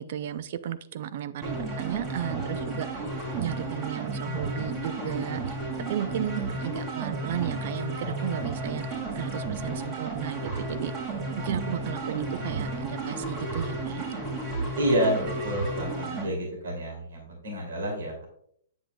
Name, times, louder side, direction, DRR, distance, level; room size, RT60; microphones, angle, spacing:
voice 1, 0.0-2.9 3.4-5.4 5.9-10.9 11.4-14.1, right 10 dB, 55° right, 14 dB, 0.4 m, -34 dB
sound 1, 1.4-16.3, right 2 dB, 25° right, 2.2 m, -33 dB
voice 2, 14.7-18.3, right 1 dB, 70° right, 0 dB, 2.7 m, -29 dB
7.8 x 7.8 x 2.3 m, 0.67 s
hypercardioid pair, 125°, 0 cm